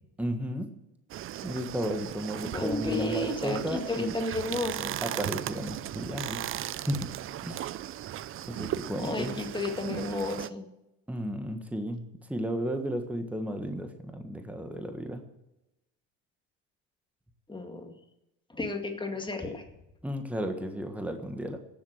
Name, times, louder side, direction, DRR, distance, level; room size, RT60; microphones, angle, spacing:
voice 1, 0.2-0.7 1.4-4.2 5.0-6.4 6.8-7.1 7.4-7.7 8.5-9.3 11.1-15.3 20.0-21.6, equal, 5° right, 5 dB, 1.5 m, -33 dB
sound 1, 1.1-10.5, right 12 dB, 35° right, 0.5 m, -37 dB
voice 2, 2.5-5.0 9.0-10.7 17.5-17.9 18.5-19.6, left 2 dB, 10° left, 4 dB, 2.0 m, -32 dB
17.0 x 7.6 x 6.5 m, 0.93 s
supercardioid pair, 95°, 39 cm